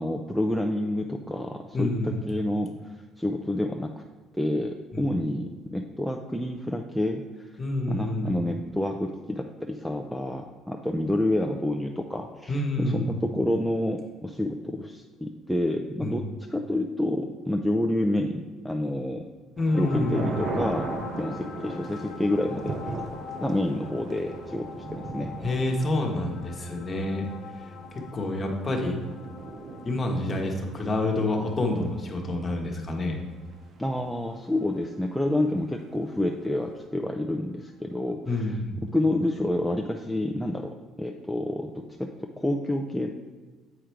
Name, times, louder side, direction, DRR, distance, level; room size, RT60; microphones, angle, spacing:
voice 1, 0.0-2.7 3.2-3.9 4.3-7.5 7.9-16.2 16.5-19.2 19.7-20.9 21.2-22.9 23.4-24.7 25.0-25.3 33.8-38.5 38.9-42.1 42.4-43.1, left 1 dB, ahead, 1 dB, 0.4 m, -28 dB
voice 2, 1.7-2.3 4.9-5.0 7.6-8.5 12.5-13.2 16.0-16.3 19.6-20.5 25.4-27.3 27.9-29.0 29.8-33.2 38.3-38.8, left 2 dB, 25° left, 1 dB, 1.2 m, -28 dB
sound 1, 19.6-33.2 33.5-33.6 33.8-34.2 34.8-34.9 35.8-35.9, right 4 dB, 50° right, 0.6 m, -39 dB
sound 2, 19.7-36.9 38.5-38.6, left 5 dB, 60° left, 0.7 m, -43 dB
8.0 x 4.9 x 4.5 m, 1.4 s
cardioid pair, 125°, 0 cm